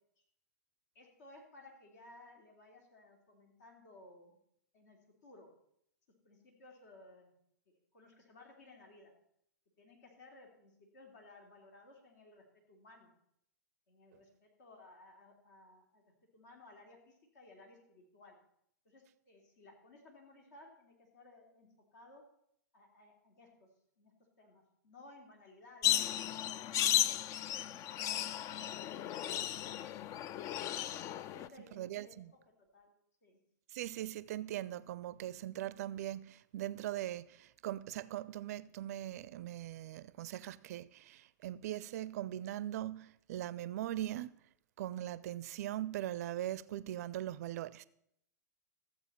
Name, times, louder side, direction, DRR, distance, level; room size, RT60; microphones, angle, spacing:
voice 1, 0.9-4.4 4.7-5.5 6.2-7.3 7.7-9.1 9.8-13.1 13.9-16.0 16.3-18.4 18.8-22.2 22.7-23.7 24.0-24.1 24.4-26.6 28.8-29.6 31.3-32.9 33.2-33.4, left 2 dB, 65° left, 3.0 m, -59 dB
sound 1, 25.8-31.5, left 12 dB, 35° left, 0.4 m, -35 dB
voice 2, 31.7-32.3 33.7-44.4 44.8-47.9, right 13 dB, 60° right, 0.4 m, -40 dB
14.0 x 7.7 x 4.3 m
hypercardioid pair, 105°, 10 cm